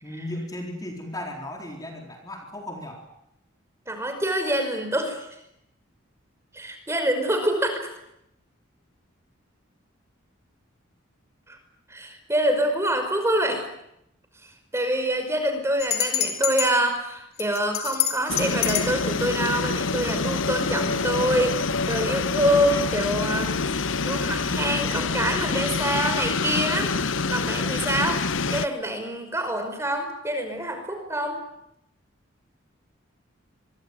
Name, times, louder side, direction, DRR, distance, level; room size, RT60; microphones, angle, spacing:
voice 1, 0.0-3.0, left 1 dB, 20° left, 2 dB, 4.2 m, -36 dB
voice 2, 3.9-5.3 6.5-7.9 11.5-11.6 11.9-13.7 14.7-26.9 27.3-28.2 28.5-31.4, right 1 dB, 15° right, 6 dB, 5.3 m, -26 dB
sound 1, 15.8-16.7 17.4-18.9, left 10 dB, 50° left, 4.6 m, -26 dB
sound 2, 18.3-28.7, left 4 dB, 70° left, 1.0 m, -26 dB
25.5 x 24.5 x 9.4 m, 0.79 s
head